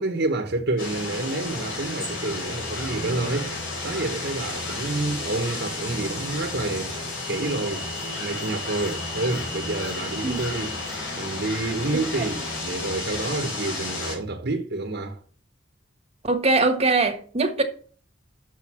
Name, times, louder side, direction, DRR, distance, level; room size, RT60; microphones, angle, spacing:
voice 1, 0.0-3.5 3.8-7.9 8.2-10.8 11.2-15.2, right 2 dB, 60° right, 1.3 m, -28 dB
sound 1, 0.8-14.2, left 2 dB, 70° left, 3.6 m, -32 dB
voice 2, 11.9-12.2 16.2-17.6, right 3 dB, 30° right, 1.5 m, -22 dB
6.8 x 6.4 x 7.3 m
head